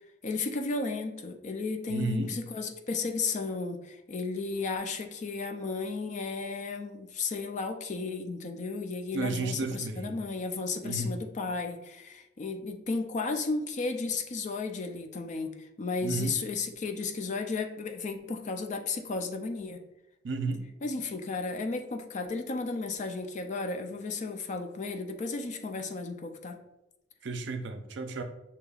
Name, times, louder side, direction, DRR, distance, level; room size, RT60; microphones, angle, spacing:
voice 1, 0.2-19.8 20.8-26.6, left 4 dB, 40° left, 5 dB, 0.4 m, -34 dB
voice 2, 1.9-2.3 9.1-10.2 10.8-11.1 16.0-16.4 20.2-20.6 27.2-28.2, right 3 dB, 65° right, 6 dB, 0.5 m, -32 dB
6.3 x 2.8 x 2.3 m, 0.94 s
head